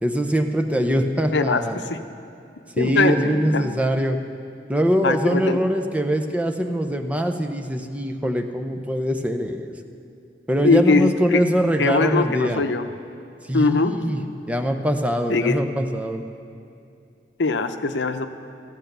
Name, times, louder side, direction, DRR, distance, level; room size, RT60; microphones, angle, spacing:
voice 1, 0.0-1.8 2.8-4.2 4.7-9.7 10.5-12.6 13.5-14.2 14.5-16.2, equal, 10° right, 5 dB, 0.7 m, -23 dB
voice 2, 1.3-2.0 2.8-3.6 5.0-5.6 10.6-11.4 11.8-12.9 13.5-14.0 15.3-15.6 17.4-18.3, left 3 dB, 85° left, 9 dB, 0.7 m, -21 dB
15.0 x 8.2 x 6.7 m, 2.5 s
head